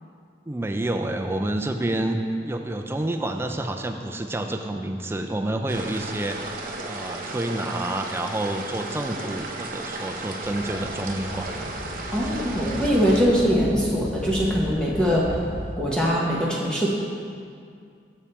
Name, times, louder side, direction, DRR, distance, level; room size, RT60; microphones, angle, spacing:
voice 1, 0.5-6.5 6.8-11.5, right 1 dB, 15° right, 4 dB, 0.4 m, -28 dB
sound 1, 5.7-13.2, right 2 dB, 50° right, 0.7 m, -34 dB
sound 2, 10.4-15.7, equal, 50° left, 1.0 m, -35 dB
voice 2, 12.1-15.3 15.7-16.9, equal, 5° left, -5 dB, 0.8 m, -22 dB
7.1 x 6.9 x 4.3 m, 2.3 s
head